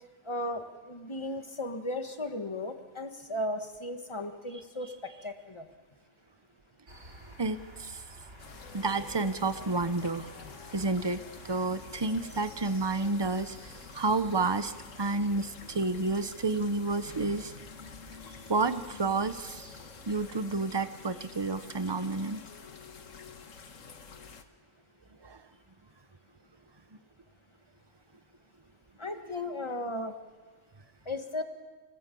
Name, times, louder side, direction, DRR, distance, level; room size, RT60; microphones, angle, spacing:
voice 1, 0.2-5.7 29.0-30.1 31.0-31.4, left 1 dB, 25° left, 6 dB, 1.6 m, -36 dB
sound 1, 6.9-20.7, right 1 dB, 65° right, 6.1 m, -52 dB
voice 2, 7.4-8.0 8.7-10.3 10.7-11.2 11.4-13.6 13.9-14.7 15.0-17.5 18.5-19.6 20.1-22.4 25.2-25.4, right 3 dB, 20° right, 11 dB, 0.9 m, -30 dB
sound 2, 8.4-24.4, left 5 dB, 80° left, 1.7 m, -49 dB
26.0 x 19.0 x 8.5 m, 1.4 s
omnidirectional pair, 1.3 m